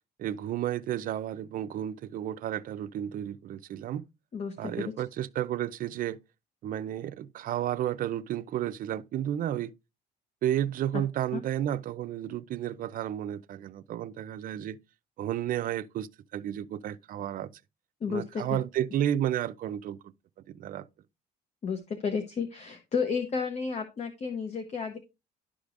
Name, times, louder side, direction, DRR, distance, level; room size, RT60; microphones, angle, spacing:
voice 1, 0.2-4.0 4.6-6.2 6.6-9.7 10.4-14.8 15.2-17.5 18.1-20.0 20.5-20.8, right 11 dB, 55° right, 0.5 m, -32 dB
voice 2, 4.3-4.7 11.3-11.4 18.0-18.4 21.6-25.0, left 5 dB, 40° left, 0.9 m, -32 dB
11.5 x 4.9 x 2.5 m
cardioid pair, 110°, 17 cm